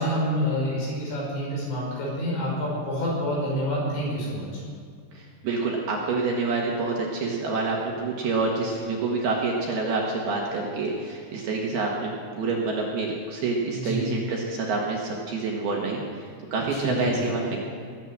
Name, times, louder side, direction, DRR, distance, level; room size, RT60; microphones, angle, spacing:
voice 1, 0.0-4.5 8.7-8.9 13.7-14.1 16.7-17.2, equal, 65° left, -5 dB, 8.1 m, -28 dB
voice 2, 5.1-16.0 16.5-17.6, right 3 dB, 65° right, -1 dB, 3.0 m, -27 dB
20.5 x 9.1 x 7.6 m, 2.1 s
omnidirectional pair, 5.7 m